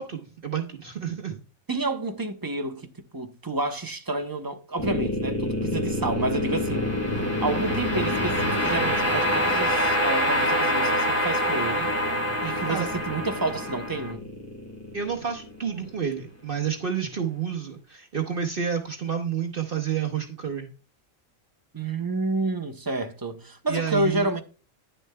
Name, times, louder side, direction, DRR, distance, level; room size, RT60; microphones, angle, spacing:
voice 1, 0.0-1.4 12.7-12.9 14.9-20.7 23.7-24.3, right 7 dB, 45° right, 0.9 m, -29 dB
voice 2, 1.7-6.9 7.4-11.9 12.4-14.3 21.7-24.4, right 2 dB, 25° right, 0.5 m, -29 dB
sound 1, 4.8-16.0, left 1 dB, 10° left, 1.9 m, -26 dB
10.5 x 6.7 x 2.2 m
omnidirectional pair, 1.4 m